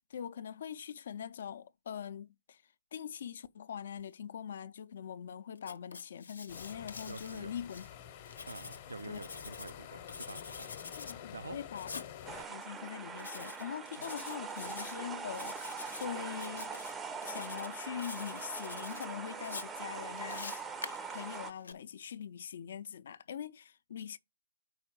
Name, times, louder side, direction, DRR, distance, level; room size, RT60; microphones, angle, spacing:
voice 1, 0.1-2.6 2.9-7.9 9.0-9.2 11.0-12.1 12.5-16.7 17.2-20.6 21.1-24.2, left 8 dB, 55° left, 0.5 m, -43 dB
Writing, 5.6-7.9 8.3-9.7 10.1-11.2 11.8-12.1 13.2-13.6 14.0-14.9 15.3-16.1 16.3-16.9 17.2-17.7 18.0-19.1 19.4-21.7, left 4 dB, 75° left, 0.8 m, -46 dB
sound 1, 6.5-12.4, left 9 dB, 35° left, 0.9 m, -48 dB
voice 2, 7.1-7.5 8.5-10.7 11.3-11.6 14.0-14.1, right 3 dB, 80° right, 0.3 m, -47 dB
sound 2, 12.3-21.5, right 5 dB, 10° right, 0.5 m, -42 dB
4.7 x 4.5 x 5.9 m
figure-of-eight pair, 140°, 0 cm